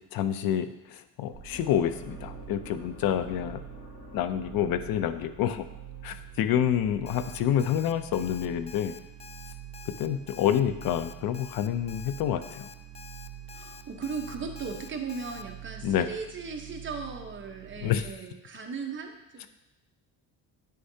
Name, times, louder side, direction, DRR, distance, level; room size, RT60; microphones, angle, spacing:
voice 1, 0.1-3.6 4.1-5.7 6.0-8.9 10.0-12.7 15.8-16.1 17.8-18.1, left 10 dB, 70° left, 11 dB, 0.6 m, -28 dB
sound 1, 1.3-7.4, left 3 dB, 35° left, 2.0 m, -50 dB
sound 2, 1.3-18.1, right 12 dB, 80° right, 0.6 m, -46 dB
Alarm, 7.1-15.4, left 7 dB, 20° left, 0.3 m, -48 dB
voice 2, 13.5-19.5, right 5 dB, 30° right, 3 dB, 1.0 m, -37 dB
8.8 x 6.6 x 2.8 m, 0.97 s
cardioid pair, 120°, 36 cm